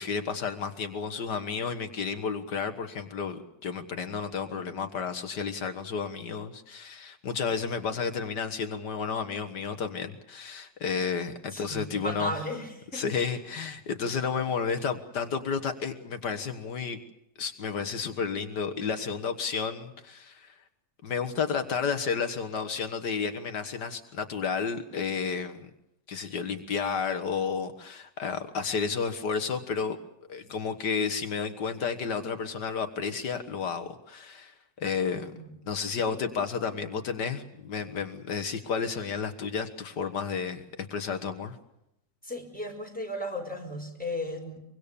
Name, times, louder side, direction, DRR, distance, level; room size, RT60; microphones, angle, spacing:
voice 1, 0.0-12.3 12.9-17.0 17.4-20.6 21.0-25.7 26.1-30.0 30.3-35.3 35.7-41.6, left 6 dB, 75° left, 7 dB, 2.0 m, -32 dB
voice 2, 11.5-13.3 35.2-35.6 42.2-44.6, left 1 dB, 5° left, 1 dB, 4.8 m, -36 dB
24.5 x 24.0 x 6.9 m, 0.84 s
omnidirectional pair, 1.8 m